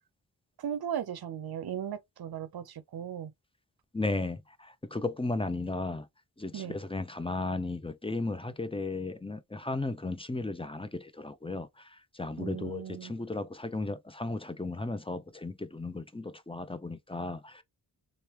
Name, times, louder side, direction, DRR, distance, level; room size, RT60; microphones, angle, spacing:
voice 1, 0.6-3.3 6.5-6.8 12.4-13.1, right 9 dB, 60° right, 0.7 m, -37 dB
voice 2, 3.9-6.1 6.4-17.6, left 2 dB, 15° left, 0.6 m, -35 dB
3.2 x 2.5 x 3.0 m
cardioid pair, 45°, 42 cm